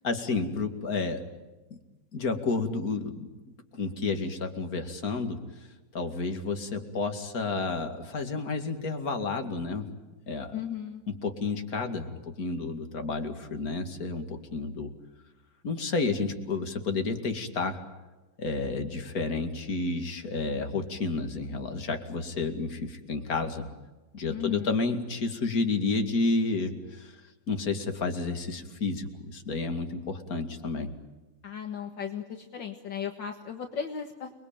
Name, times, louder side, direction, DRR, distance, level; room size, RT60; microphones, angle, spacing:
voice 1, 0.0-1.2 2.1-3.3 3.7-5.4 5.9-9.9 10.3-10.6 11.2-14.9 15.6-17.8 18.4-23.7 24.1-27.2 27.5-30.9, left 3 dB, 45° left, 5 dB, 2.8 m, -31 dB
voice 2, 10.5-11.0 24.3-24.7 31.4-34.3, left 8 dB, 65° left, 4 dB, 2.3 m, -36 dB
29.0 x 21.5 x 9.0 m, 1.2 s
omnidirectional pair, 2.2 m